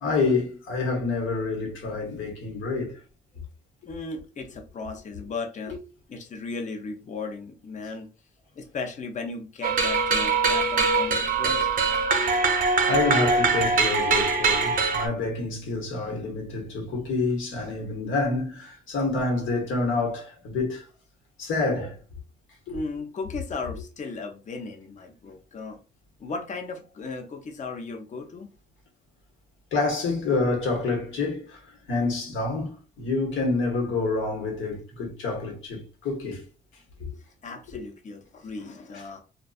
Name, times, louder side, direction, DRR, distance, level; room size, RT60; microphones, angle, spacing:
voice 1, 0.0-3.0 5.7-5.8 12.9-20.8 21.4-22.0 22.7-22.8 29.7-36.4 37.0-37.1 37.7-37.8 38.9-39.0, left 3 dB, 80° left, 1.1 m, -28 dB
voice 2, 3.9-5.7 6.1-8.1 8.5-11.7 22.7-25.8 26.2-28.5 37.4-39.2, left 3 dB, 40° left, 0.6 m, -36 dB
sound 1, 9.6-15.1, right 4 dB, 45° right, 0.6 m, -22 dB
2.6 x 2.3 x 2.3 m
cardioid pair, 90°, 20 cm